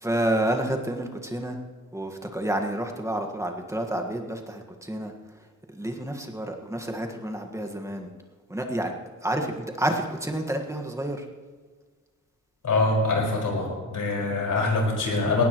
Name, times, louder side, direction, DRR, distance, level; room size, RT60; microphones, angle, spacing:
voice 1, 0.0-1.6 1.9-5.1 5.7-8.1 8.5-8.9 9.2-11.2, right 1 dB, 10° right, 3 dB, 1.6 m, -29 dB
voice 2, 12.6-15.4, left 3 dB, 90° left, -2 dB, 5.2 m, -24 dB
19.5 x 18.0 x 3.1 m, 1.5 s
wide cardioid pair, 140°, 30 cm